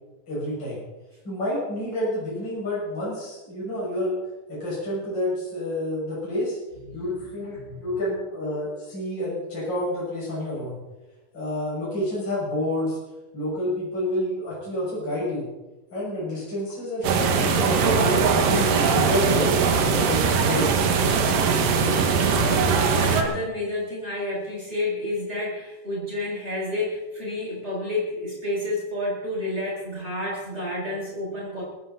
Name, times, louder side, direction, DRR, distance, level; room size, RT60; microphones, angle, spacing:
voice 1, 0.3-0.8 1.2-4.2 4.5-6.6 6.9-10.8 11.3-13.0 13.3-15.5 15.9-18.0 18.5-20.8, left 1 dB, 30° left, -8 dB, 7.4 m, -29 dB
voice 2, 6.9-7.8 22.4-31.6, left 1 dB, 15° right, -4 dB, 7.3 m, -30 dB
sound 1, 17.0-23.2, right 5 dB, 75° right, 3.1 m, -21 dB
19.5 x 15.5 x 4.3 m, 1.1 s
omnidirectional pair, 3.9 m